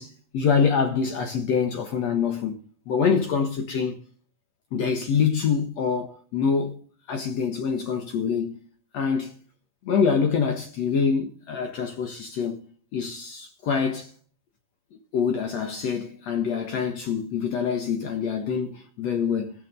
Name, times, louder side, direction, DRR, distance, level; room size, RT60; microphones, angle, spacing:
voice 1, 0.0-2.6 2.9-3.9 4.7-6.7 7.1-8.6 8.9-9.3 9.8-12.6 12.9-14.1 15.1-19.5, left 6 dB, 85° left, 1.4 m, -25 dB
19.5 x 6.6 x 5.3 m
omnidirectional pair, 5.5 m